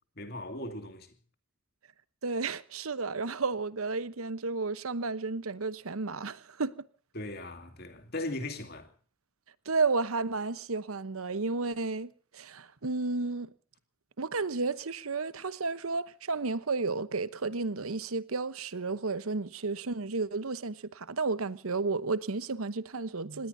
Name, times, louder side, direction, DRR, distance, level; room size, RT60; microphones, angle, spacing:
voice 1, 0.2-1.1 7.1-8.9, left 1 dB, 45° left, 2.4 m, -38 dB
voice 2, 2.2-6.7 9.7-13.5 14.2-23.5, right 3 dB, 80° right, 1.0 m, -32 dB
26.5 x 19.5 x 2.7 m
head